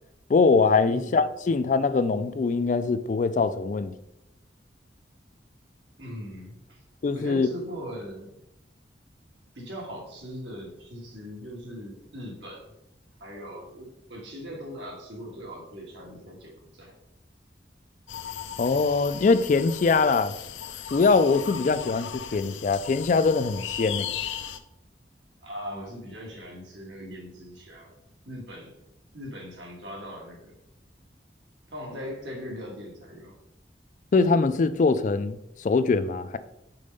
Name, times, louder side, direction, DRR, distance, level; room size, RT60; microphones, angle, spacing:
voice 1, 0.3-3.9 7.0-7.5 18.6-20.4 20.9-24.1 34.1-36.4, left 4 dB, 40° left, 0.3 m, -23 dB
voice 2, 6.0-6.8 7.1-8.4 9.6-12.7 13.2-16.9 25.4-27.9 28.2-28.7 29.1-30.6 31.7-33.3, equal, 80° right, 2.0 m, -40 dB
sound 1, 18.1-24.6, left 9 dB, 85° left, 0.6 m, -37 dB
5.3 x 4.2 x 5.3 m
head